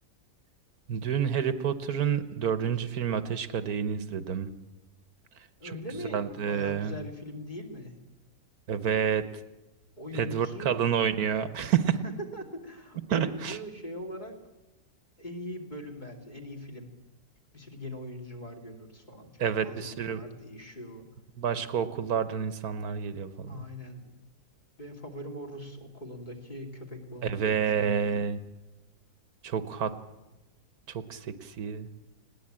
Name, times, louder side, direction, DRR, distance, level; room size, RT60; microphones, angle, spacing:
voice 1, 0.9-4.5 6.1-6.9 8.7-9.2 10.1-12.0 13.1-13.6 19.4-20.2 21.4-23.6 27.2-28.4 29.4-29.9 30.9-31.9, right 8 dB, 75° right, 12 dB, 1.5 m, -29 dB
voice 2, 5.6-8.0 10.0-10.9 12.0-14.4 15.2-16.9 17.5-21.1 23.5-24.1 24.8-28.2, left 1 dB, 30° left, 2 dB, 2.8 m, -41 dB
20.5 x 17.0 x 8.8 m, 1.0 s
omnidirectional pair, 1.6 m